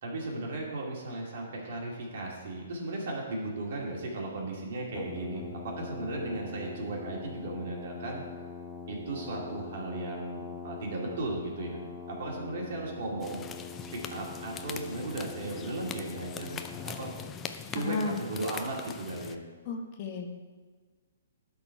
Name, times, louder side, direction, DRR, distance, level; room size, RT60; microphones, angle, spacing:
voice 1, 0.0-8.2 8.9-11.8 12.1-13.4 13.9-17.1 17.7-19.4, right 2 dB, 55° right, -2 dB, 2.4 m, -36 dB
Brass instrument, 4.9-17.2, left 5 dB, 5° right, 1.2 m, -43 dB
sound 1, 13.2-19.4, left 7 dB, 20° left, 0.5 m, -42 dB
voice 2, 17.7-18.2 19.6-20.3, left 4 dB, 40° left, 3 dB, 1.1 m, -33 dB
12.0 x 4.2 x 4.6 m, 1.4 s
hypercardioid pair, 130°, 0 cm